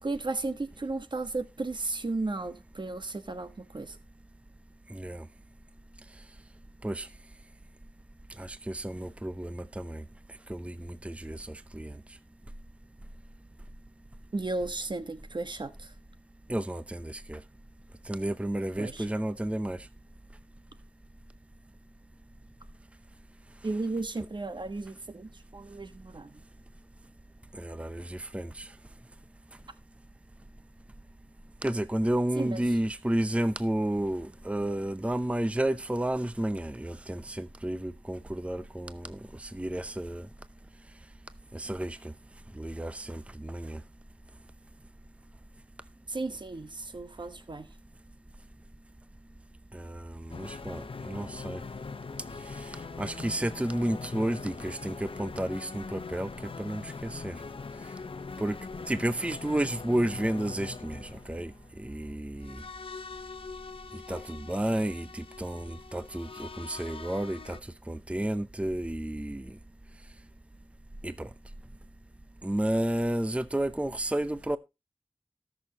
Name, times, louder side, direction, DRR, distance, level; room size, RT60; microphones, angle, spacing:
voice 1, 0.0-4.0 14.3-15.9 18.8-19.1 23.6-26.4 32.4-32.6 46.1-47.7, right 3 dB, 60° right, 1.3 m, -34 dB
voice 2, 4.9-5.3 6.8-7.1 8.4-10.0 10.5-12.0 16.5-17.4 18.1-19.9 27.5-28.7 31.6-40.3 41.5-42.1 42.5-43.8 49.7-51.6 52.5-56.3 56.6-57.4 58.4-58.6 58.9-62.6 64.1-67.6 67.9-69.6 71.0-71.3 72.4-74.6, right 1 dB, 15° right, 0.6 m, -32 dB
sound 1, 50.3-67.6, left 4 dB, 80° left, 0.8 m, -42 dB
19.0 x 6.4 x 2.9 m
wide cardioid pair, 55°, 9 cm